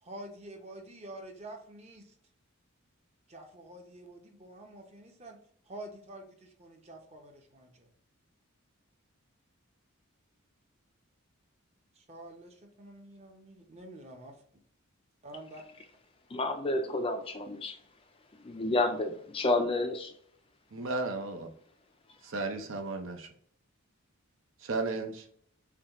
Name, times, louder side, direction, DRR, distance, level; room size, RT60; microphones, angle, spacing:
voice 1, 0.0-2.1 3.3-5.4 5.7-7.9 11.9-14.4 15.2-15.6, right 1 dB, 30° right, 0.8 m, -48 dB
voice 2, 16.3-17.8 18.4-20.1, left 2 dB, 25° left, 0.4 m, -30 dB
voice 3, 20.7-21.5 22.2-23.3 24.6-25.3, right 3 dB, 60° right, 0.7 m, -34 dB
7.0 x 2.4 x 3.0 m
head